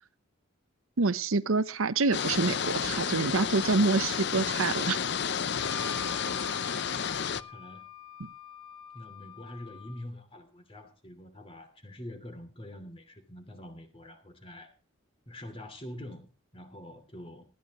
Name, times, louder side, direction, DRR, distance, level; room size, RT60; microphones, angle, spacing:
voice 1, 1.0-5.0 8.2-8.3, right 3 dB, 80° right, 13 dB, 0.8 m, -27 dB
sound 1, 2.1-7.4, left 7 dB, 55° left, 0.6 m, -31 dB
voice 2, 5.6-7.8 8.9-14.7 15.3-17.5, left 1 dB, 25° left, 7 dB, 2.8 m, -46 dB
Wind instrument woodwind instrument, 5.6-10.1, left 4 dB, 20° right, 2.0 m, -45 dB
18.5 x 14.0 x 3.0 m, 0.31 s
head